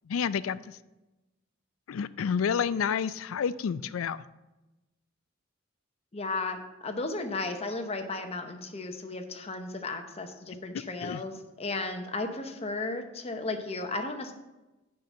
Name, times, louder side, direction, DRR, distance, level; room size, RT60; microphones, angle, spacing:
voice 1, 0.1-0.6 1.9-4.2 11.0-11.2, left 7 dB, 85° left, 17 dB, 0.4 m, -29 dB
voice 2, 6.1-14.3, left 3 dB, 30° left, 6 dB, 0.9 m, -34 dB
6.6 x 5.7 x 7.2 m, 1.0 s
head